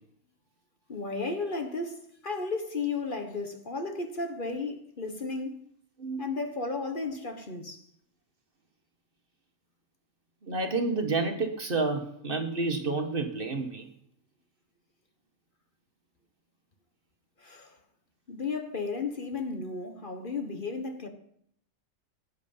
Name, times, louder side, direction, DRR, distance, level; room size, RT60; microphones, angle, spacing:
voice 1, 0.9-5.5 6.2-7.8 17.4-17.8 18.3-21.1, left 3 dB, 40° left, 1.5 m, -34 dB
voice 2, 10.4-13.9, right 3 dB, 45° right, 1.6 m, -29 dB
17.5 x 10.0 x 5.6 m
omnidirectional pair, 1.3 m